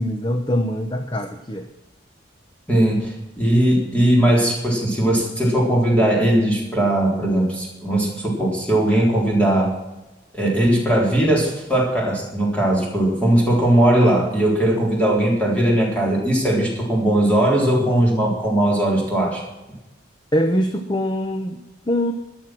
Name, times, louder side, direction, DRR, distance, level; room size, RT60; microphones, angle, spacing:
voice 1, 0.0-1.7 20.3-22.1, equal, 25° left, 6 dB, 0.8 m, -23 dB
voice 2, 2.7-9.8 10.3-19.4, right 1 dB, 5° left, -3 dB, 3.8 m, -19 dB
13.5 x 11.0 x 6.2 m, 1.0 s
head